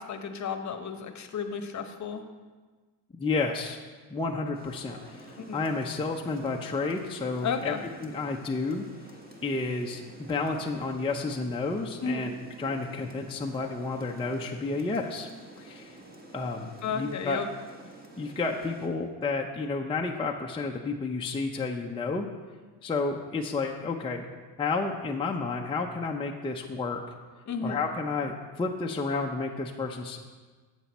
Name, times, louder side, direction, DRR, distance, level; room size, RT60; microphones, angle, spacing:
voice 1, 0.0-2.3 5.4-5.6 7.4-7.8 12.0-12.3 16.8-17.5 27.5-27.8, left 5 dB, 40° left, 7 dB, 1.0 m, -33 dB
voice 2, 3.2-3.8 4.1-7.7 8.0-8.8 9.4-15.3 15.6-15.9 16.3-17.4 18.2-22.3 22.8-24.3 24.6-27.0 27.6-30.2, left 3 dB, 10° left, 1 dB, 0.6 m, -31 dB
Rain, 4.5-18.9, right 2 dB, 20° right, 1.5 m, -49 dB
8.1 x 7.6 x 4.2 m, 1.4 s
supercardioid pair, 90°, 44 cm